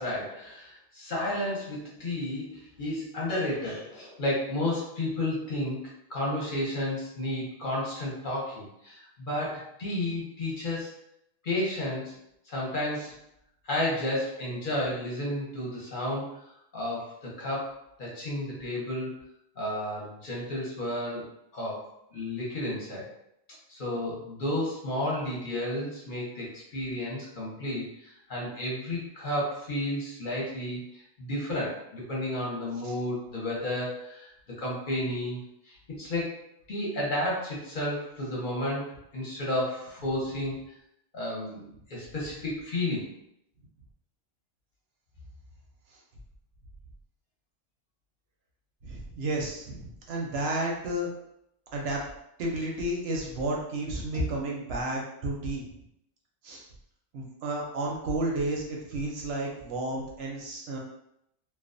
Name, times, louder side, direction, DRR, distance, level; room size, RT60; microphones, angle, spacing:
voice 1, 0.0-5.8 6.1-10.9 11.4-12.1 12.4-13.1 13.6-16.4 16.7-19.1 19.6-21.3 21.5-21.8 22.1-23.1 23.7-34.3 34.6-35.4 35.6-40.5 41.1-43.1 54.1-54.2, left 1 dB, 45° left, -5 dB, 0.8 m, -32 dB
voice 2, 48.8-51.1 51.7-52.0 52.4-55.7 56.4-56.6 57.1-60.8, right 1 dB, 65° right, -1 dB, 0.7 m, -32 dB
2.3 x 2.2 x 2.4 m, 0.78 s
omnidirectional pair, 1.3 m